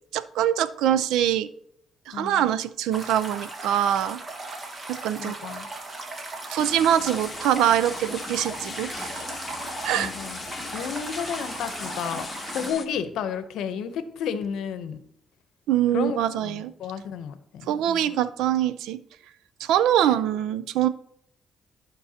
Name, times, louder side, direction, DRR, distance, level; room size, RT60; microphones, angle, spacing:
voice 1, 0.1-1.5 2.1-4.2 5.0-5.4 6.5-9.2 9.8-10.1 15.7-16.7 17.7-19.0 19.6-20.9, right 11 dB, 90° right, 14 dB, 0.5 m, -23 dB
voice 2, 2.1-2.4 5.2-5.7 9.9-10.4 10.7-15.0 15.9-18.1 20.0-20.2, left 7 dB, 85° left, 11 dB, 0.7 m, -32 dB
sound 1, 2.9-12.7, right 2 dB, 35° right, 1.7 m, -37 dB
sound 2, 6.6-12.9, left 4 dB, 35° left, 0.9 m, -38 dB
14.0 x 5.4 x 2.8 m, 0.70 s
cardioid pair, 90°, 0 cm